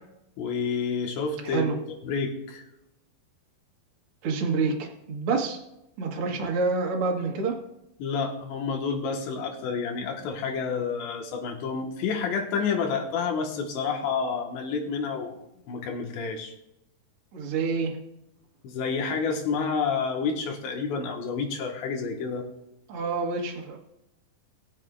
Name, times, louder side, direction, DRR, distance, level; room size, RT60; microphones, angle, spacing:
voice 1, 0.4-1.7 2.0-2.6 6.2-6.3 8.0-15.4 15.7-16.5 18.6-22.4, left 5 dB, 85° left, 1 dB, 3.8 m, -29 dB
voice 2, 1.4-1.8 4.2-5.6 6.0-7.6 17.3-18.0 22.9-23.8, right 4 dB, 60° right, 0 dB, 1.5 m, -27 dB
21.0 x 7.5 x 2.6 m, 0.87 s
omnidirectional pair, 4.9 m